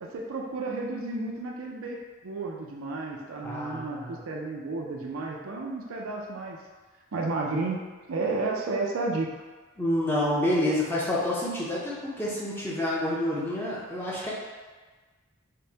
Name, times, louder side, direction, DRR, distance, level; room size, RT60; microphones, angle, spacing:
voice 1, 0.0-6.6 7.1-7.8 8.1-9.3, right 3 dB, 80° right, 0 dB, 0.5 m, -32 dB
voice 2, 3.4-4.2 9.8-14.3, left 1 dB, 10° left, -7 dB, 0.6 m, -28 dB
5.1 x 2.2 x 2.8 m, 1.3 s
head